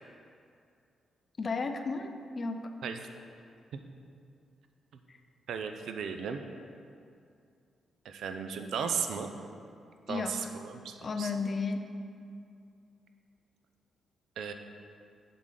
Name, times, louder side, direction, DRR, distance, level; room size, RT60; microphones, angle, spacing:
voice 1, 1.4-2.7 5.1-5.2 10.1-10.5 11.0-11.8, left 4 dB, 40° left, 7 dB, 0.5 m, -33 dB
voice 2, 5.5-6.4 8.0-9.3 10.1-11.3 14.4-14.5, right 6 dB, 80° right, 6 dB, 0.5 m, -35 dB
7.8 x 7.6 x 3.9 m, 2.4 s
cardioid pair, 95°, 0 cm